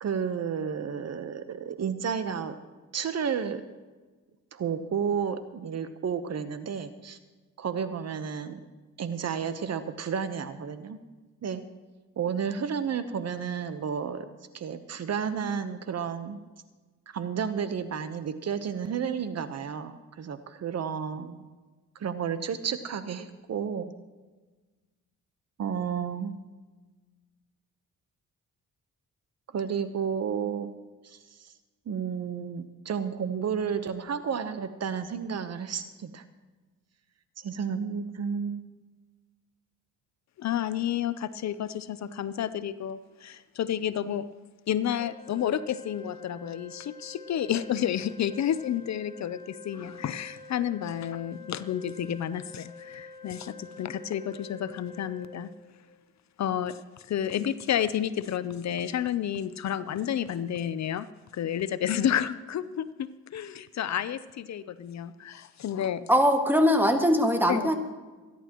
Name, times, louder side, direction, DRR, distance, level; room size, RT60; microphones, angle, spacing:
voice 1, 0.0-2.5 2.9-3.6 4.5-7.2 7.6-8.6 9.0-11.0 11.4-11.6 12.2-14.3 14.5-16.4 17.1-21.4 21.9-23.9 25.6-26.4 29.5-30.7 31.0-31.2 31.4-31.5 31.9-36.2 37.4-38.6, right 7 dB, 55° right, 10 dB, 1.0 m, -32 dB
voice 2, 40.4-44.3 44.7-55.5 56.4-61.1 61.3-66.0 67.5-67.6, left 10 dB, 60° left, 14 dB, 0.6 m, -30 dB
Organ, 45.0-56.0, left 4 dB, 15° left, 1.7 m, -47 dB
voice 3, 66.1-67.7, equal, 5° right, 4 dB, 1.9 m, -21 dB
26.0 x 11.0 x 3.0 m, 1.3 s
cardioid pair, 90°, 31 cm